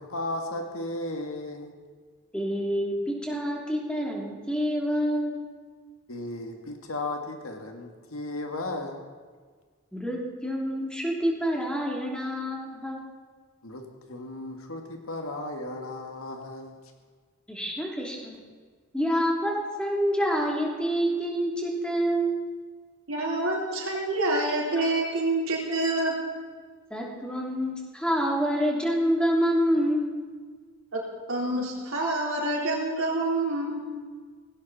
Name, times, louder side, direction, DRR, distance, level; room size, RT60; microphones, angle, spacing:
voice 1, 0.0-1.7 6.1-9.0 13.6-16.8, left 2 dB, 80° left, 3 dB, 1.9 m, -35 dB
voice 2, 2.3-5.4 9.9-13.0 17.5-18.4 18.9-22.3 26.9-30.2, equal, 5° left, -2 dB, 3.0 m, -27 dB
voice 3, 23.1-26.1 30.9-31.0 31.3-33.8, right 2 dB, 75° right, -3 dB, 3.8 m, -27 dB
17.5 x 17.5 x 4.2 m, 1.5 s
head